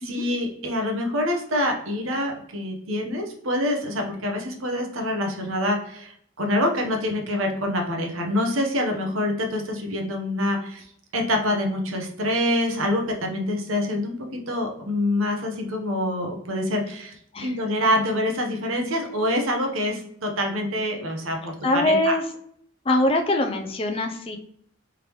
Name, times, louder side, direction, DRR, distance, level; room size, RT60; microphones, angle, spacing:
voice 1, 0.0-10.9 11.1-14.2 14.5-17.1 17.4-22.1, left 1 dB, 85° right, 2 dB, 0.9 m, -26 dB
voice 2, 21.6-22.2 22.8-24.4, left 1 dB, 30° left, 5 dB, 0.4 m, -23 dB
3.7 x 3.3 x 3.0 m, 0.69 s
head